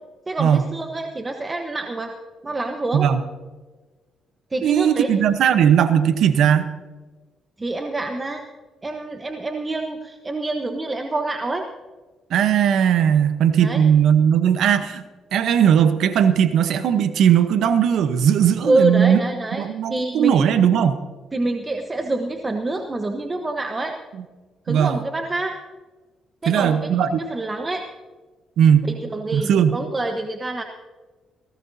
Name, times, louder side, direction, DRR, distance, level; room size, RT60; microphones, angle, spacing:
voice 1, 0.3-2.1 2.4-3.1 4.5-5.1 7.6-8.4 8.8-11.6 13.6-13.8 18.6-20.4 21.3-24.0 24.7-25.6 26.4-26.9 27.2-27.9 28.9-30.6, right 2 dB, 25° right, 4 dB, 1.1 m, -26 dB
voice 2, 4.6-6.7 12.3-15.0 15.3-19.2 19.6-21.0 24.7-25.0 26.5-27.2 28.6-28.8 29.3-29.8, right 8 dB, 75° right, 10 dB, 0.9 m, -18 dB
19.0 x 17.5 x 2.8 m, 1.3 s
cardioid pair, 90°, 0 cm